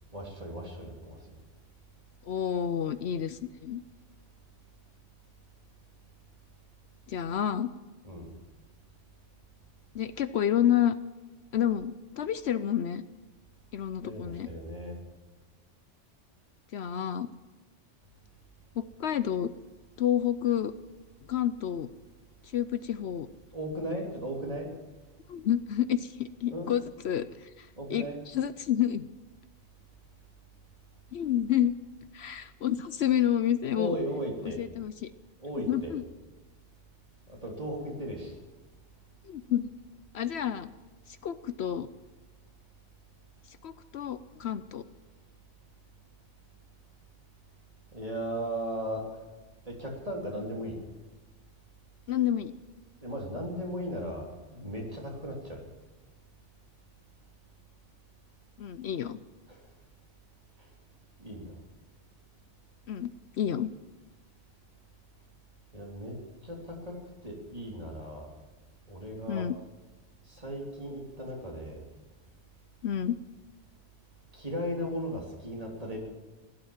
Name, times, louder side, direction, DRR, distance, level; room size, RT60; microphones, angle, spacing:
voice 1, 0.1-1.2 8.0-8.3 14.0-15.0 23.5-24.7 26.5-26.7 27.8-28.2 33.7-34.6 35.4-36.0 37.3-38.3 47.9-49.1 49.7-50.8 53.0-55.6 59.5-59.6 61.2-61.6 65.7-66.2 66.4-67.0 67.2-68.3 68.9-69.5 70.3-71.8 74.3-76.0, equal, 30° right, -1 dB, 3.5 m, -36 dB
voice 2, 2.2-3.8 7.1-7.7 9.9-10.9 11.5-13.0 13.7-14.5 16.7-17.3 18.8-19.5 20.0-20.7 21.3-21.9 22.4-23.3 25.3-29.1 31.1-31.7 32.1-33.9 34.6-35.1 35.7-36.0 39.3-39.7 40.1-40.7 41.1-41.9 43.6-44.8 52.1-52.5 58.6-59.2 62.9-63.7 69.3-69.6 72.8-73.2, left 10 dB, 70° left, 12 dB, 0.9 m, -29 dB
16.5 x 12.0 x 7.3 m, 1.2 s
omnidirectional pair, 1.2 m